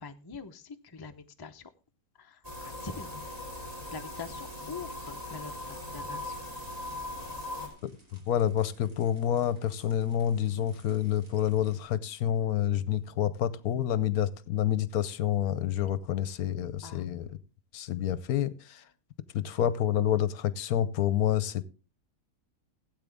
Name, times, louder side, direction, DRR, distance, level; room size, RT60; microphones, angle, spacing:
voice 1, 0.0-1.7 2.1-3.2 3.9-6.4 16.8-17.1, left 5 dB, 30° left, 0.4 m, -44 dB
sound 1, 2.4-7.7, left 2 dB, 25° right, 2.9 m, -39 dB
sound 2, 4.1-11.8, equal, 55° right, 3.5 m, -61 dB
voice 2, 8.3-17.3 17.7-18.9 19.3-21.6, left 10 dB, 70° left, 1.1 m, -28 dB
16.0 x 8.4 x 3.5 m
omnidirectional pair, 1.7 m